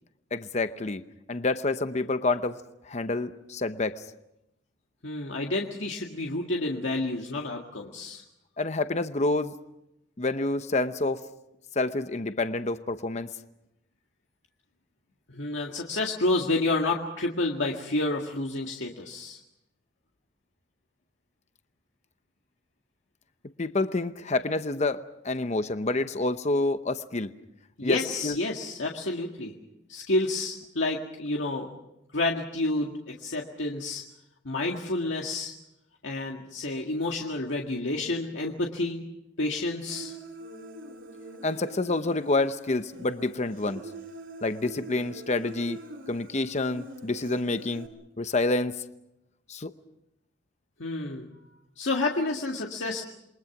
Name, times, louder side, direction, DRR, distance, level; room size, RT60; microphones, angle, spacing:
voice 1, 0.3-1.0 1.3-2.6 2.9-4.0 8.6-9.5 10.2-11.2 11.8-13.3 23.6-27.3 27.8-28.0 28.2-28.4 41.4-43.8 44.4-45.8 46.1-47.9 48.2-48.7 49.5-49.7, left 2 dB, 35° left, 10 dB, 0.8 m, -28 dB
voice 2, 5.0-8.2 15.3-19.4 27.8-29.6 29.9-31.7 32.1-34.0 34.4-35.5 36.0-39.0 39.4-40.1 50.8-51.3 51.8-53.0, left 2 dB, 75° left, 0 dB, 2.0 m, -29 dB
Human voice, 39.9-47.9, right 2 dB, 80° right, 3.4 m, -44 dB
28.0 x 22.5 x 6.0 m, 0.87 s
head